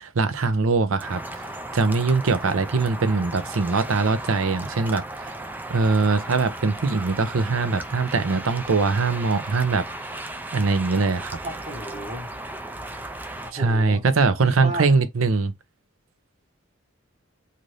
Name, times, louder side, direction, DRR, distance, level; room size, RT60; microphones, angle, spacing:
voice 1, 0.0-1.4 1.7-5.3 5.7-9.9 10.5-11.4 13.5-15.5, right 4 dB, 80° right, 0.6 m, -22 dB
sound 1, 1.0-13.5, right 1 dB, 10° right, 0.3 m, -36 dB
voice 2, 11.4-12.3 13.4-14.0 14.4-14.8, right 1 dB, 30° right, 1.1 m, -33 dB
2.6 x 2.5 x 3.2 m
head